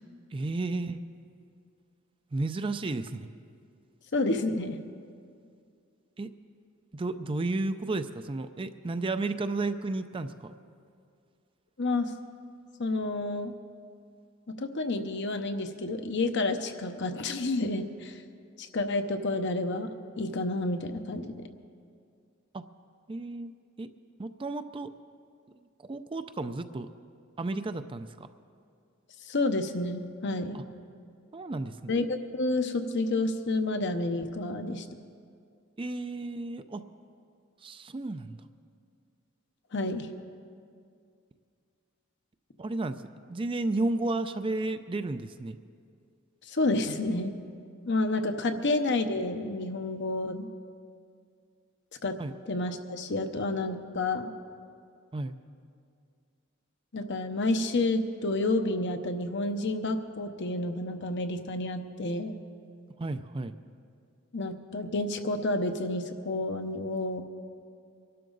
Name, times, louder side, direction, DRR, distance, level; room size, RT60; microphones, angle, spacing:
voice 1, 0.3-1.0 2.3-3.3 6.2-6.3 6.9-10.6 22.5-22.6 23.1-23.9 24.2-24.9 25.6-26.9 27.4-28.3 30.5-30.6 31.3-31.9 35.8-36.8 37.6-38.4 42.6-43.0 43.3-45.6 52.2-52.3 55.1-55.4 63.0-63.6, right 2 dB, 25° right, 10 dB, 0.4 m, -33 dB
voice 2, 4.1-4.8 11.8-12.1 12.8-13.5 14.5-18.2 18.6-19.9 20.2-21.4 29.3-30.6 31.9-34.8 39.7-40.1 46.5-47.3 47.9-50.5 52.0-52.1 52.5-54.3 56.9-62.3 64.3-67.2, left 2 dB, 60° left, 7 dB, 0.8 m, -30 dB
23.5 x 12.0 x 3.9 m, 2.3 s
head